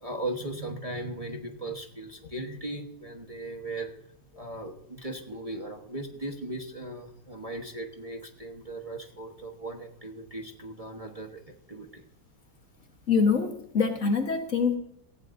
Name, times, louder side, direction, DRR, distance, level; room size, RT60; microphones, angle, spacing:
voice 1, 0.0-3.9 4.4-12.0, right 2 dB, 25° right, 2 dB, 1.2 m, -38 dB
voice 2, 13.1-14.8, left 5 dB, 50° left, 4 dB, 1.6 m, -24 dB
17.5 x 16.0 x 2.7 m, 0.75 s
omnidirectional pair, 1.9 m